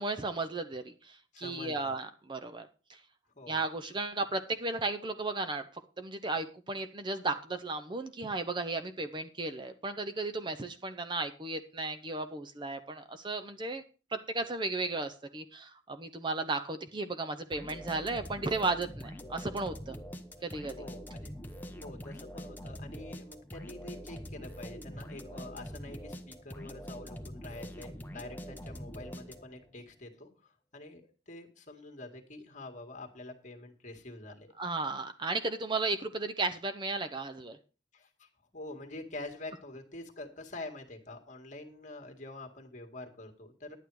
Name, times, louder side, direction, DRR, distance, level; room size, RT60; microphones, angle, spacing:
voice 1, 0.0-3.0 3.5-13.8 14.1-20.0 20.4-20.8 34.6-37.6, right 3 dB, 25° right, 8 dB, 0.7 m, -35 dB
voice 2, 1.3-2.0 3.4-3.6 20.8-21.3 21.8-34.5 37.9-43.8, left 2 dB, 40° left, 4 dB, 1.9 m, -46 dB
sound 1, 17.5-29.7, equal, 10° left, 0.9 m, -44 dB
11.0 x 9.1 x 4.7 m, 0.35 s
head